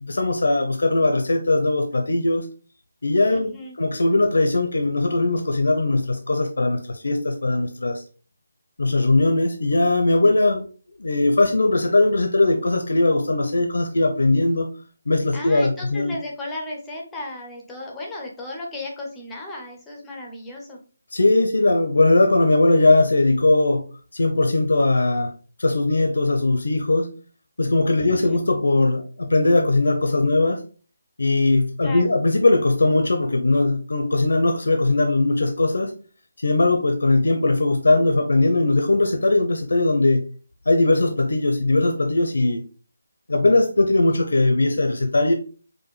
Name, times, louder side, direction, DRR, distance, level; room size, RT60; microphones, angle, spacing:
voice 1, 0.0-2.5 3.0-8.0 8.8-10.6 11.0-14.7 15.1-16.1 21.1-23.9 24.1-25.3 25.6-27.1 27.6-30.6 31.2-35.9 36.4-40.2 40.7-42.6 43.3-45.3, left 2 dB, 80° left, 0.6 m, -19 dB
voice 2, 3.3-3.8 15.3-20.8 28.0-28.4 31.8-32.1, left 2 dB, 5° left, 0.5 m, -35 dB
4.8 x 2.1 x 3.0 m
hypercardioid pair, 175°, 0 cm